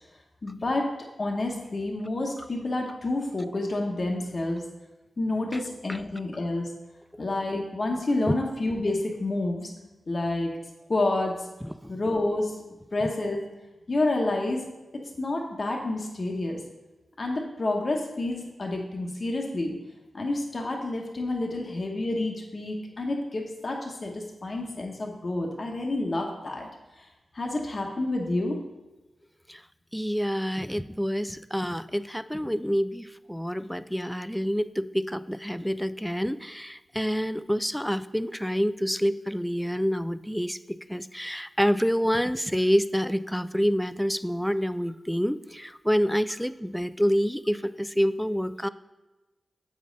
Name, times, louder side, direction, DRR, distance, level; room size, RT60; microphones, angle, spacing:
voice 1, 0.4-0.9 1.2-4.6 5.2-6.7 7.2-9.7 10.1-10.5 10.9-11.5 11.9-12.6 12.9-13.4 13.9-14.6 15.2-16.6 17.2-19.7 20.1-26.7 27.0-27.1 27.3-28.6, left 2 dB, 55° left, 1 dB, 1.0 m, -29 dB
voice 2, 29.9-48.7, equal, ahead, 14 dB, 0.3 m, -27 dB
7.3 x 5.2 x 3.9 m, 1.1 s
cardioid pair, 40°, 0 cm